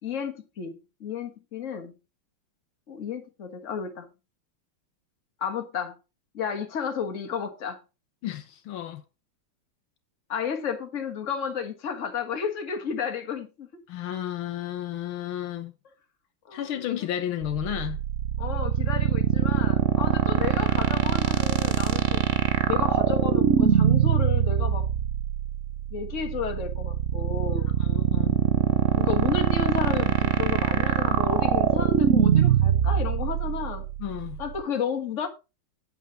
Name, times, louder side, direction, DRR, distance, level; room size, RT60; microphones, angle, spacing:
voice 1, 0.0-2.0 2.9-4.1 5.4-6.0 6.3-7.8 10.3-13.7 16.5-16.7 18.4-22.3 22.7-24.9 25.9-27.7 28.9-33.8 34.4-35.3, left 7 dB, 40° left, 1.8 m, -32 dB
voice 2, 8.2-9.0 13.9-15.7 16.5-18.0 27.8-28.4 34.0-34.4, left 11 dB, 75° left, 1.7 m, -32 dB
sound 1, 17.4-34.6, right 9 dB, 60° right, 0.8 m, -23 dB
9.3 x 8.5 x 4.0 m
omnidirectional pair, 2.3 m